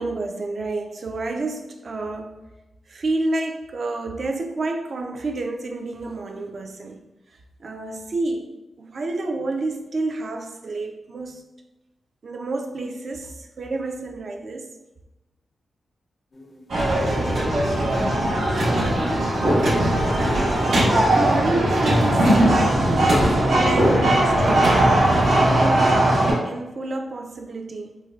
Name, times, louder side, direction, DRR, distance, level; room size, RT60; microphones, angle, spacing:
voice 1, 0.0-2.4 2.9-7.0 7.6-11.5 12.2-14.7 18.5-18.8 21.2-23.0 23.4-24.9 25.4-28.0, right 2 dB, 50° right, 0.4 m, -29 dB
sound 1, 16.3-16.6 19.6-19.7 19.8-22.2 22.9-25.8, left 2 dB, 40° left, 0.4 m, -34 dB
sound 2, 16.7-26.3, right 1 dB, 85° right, 1.1 m, -19 dB
4.5 x 2.1 x 2.3 m
wide cardioid pair, 125°, 0 cm